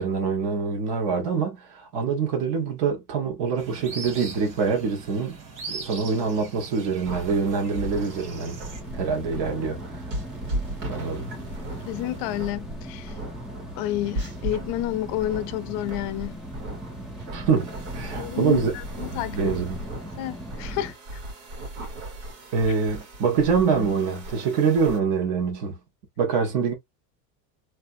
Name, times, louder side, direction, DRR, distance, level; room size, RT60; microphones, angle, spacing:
voice 1, 0.0-5.3 5.7-8.6 8.9-10.0 10.9-11.3 17.3-18.7 19.1-19.8 22.5-25.8 26.2-26.7, right 5 dB, 55° right, 1.6 m, -25 dB
sound 1, 3.6-8.8, right 4 dB, 40° right, 1.8 m, -40 dB
sound 2, 7.0-25.0, right 1 dB, 85° right, 2.2 m, -37 dB
sound 3, 7.7-20.9, equal, ahead, 0.3 m, -39 dB
voice 2, 11.9-13.1 13.8-16.3 18.2-18.6 19.0-19.6 20.2-20.9, left 14 dB, 55° left, 0.6 m, -29 dB
3.3 x 2.9 x 2.5 m
supercardioid pair, 135°, 48 cm